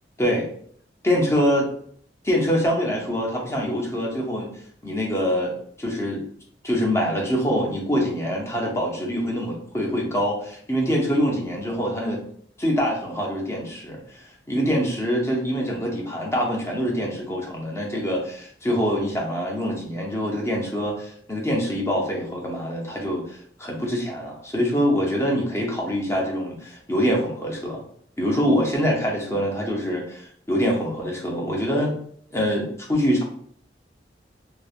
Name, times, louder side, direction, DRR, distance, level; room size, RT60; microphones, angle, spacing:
voice 1, 1.0-1.7 2.2-4.5 4.8-5.5 5.8-6.2 6.6-12.2 12.6-14.2 14.5-27.8 28.2-31.9 32.3-33.2, equal, 15° left, -1 dB, 0.6 m, -24 dB
3.1 x 2.1 x 2.4 m, 0.62 s
head